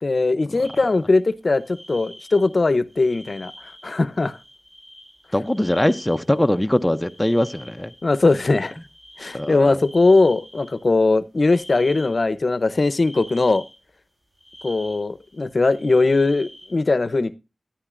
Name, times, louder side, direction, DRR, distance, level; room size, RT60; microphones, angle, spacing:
voice 1, 0.0-4.4 8.0-8.7 9.2-13.6 14.6-17.4, left 3 dB, 55° left, 0.6 m, -20 dB
sound 1, 0.6-1.2 1.6-2.6 2.9-10.9 11.4-12.2 12.8-13.8 14.4-16.8, equal, 40° right, 7.9 m, -46 dB
voice 2, 5.3-7.9 9.3-9.8, left 1 dB, 10° left, 0.5 m, -21 dB
13.0 x 9.9 x 2.5 m
wide cardioid pair, 60°, 0 cm